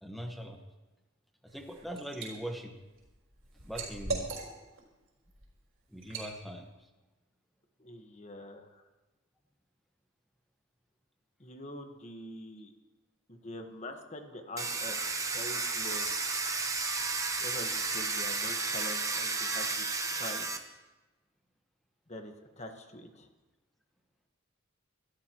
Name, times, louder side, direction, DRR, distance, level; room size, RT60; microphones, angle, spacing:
voice 1, 0.0-0.6 1.4-2.7 3.6-4.3 5.9-6.7, equal, ahead, 3 dB, 1.3 m, -41 dB
Liquid, 1.5-2.3 2.7-4.8 5.3-5.5 6.0-6.3, right 3 dB, 80° right, 4.4 m, -38 dB
voice 2, 7.8-8.8 11.4-12.7 13.3-16.1 17.4-20.5 22.1-23.3, left 1 dB, 35° left, 5 dB, 1.4 m, -44 dB
Domestic sounds home sounds, 14.6-20.6, right 4 dB, 15° right, 0.9 m, -32 dB
25.0 x 13.0 x 3.0 m, 1.1 s
head